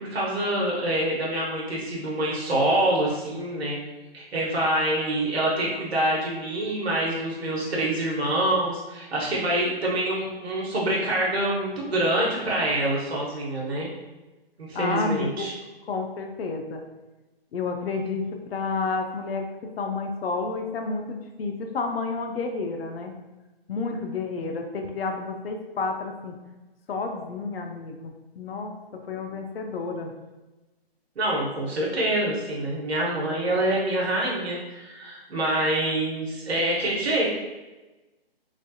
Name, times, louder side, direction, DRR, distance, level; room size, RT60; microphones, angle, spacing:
voice 1, 0.0-3.8 4.1-13.9 14.6-15.5 31.2-37.3, right 1 dB, 90° right, -4 dB, 1.0 m, -26 dB
voice 2, 14.7-15.5 15.9-16.8 17.5-19.5 19.8-23.2 23.7-26.4 26.9-30.1, left 4 dB, 70° left, 3 dB, 0.6 m, -30 dB
3.2 x 2.6 x 2.3 m, 1.1 s
hypercardioid pair, 155°, 31 cm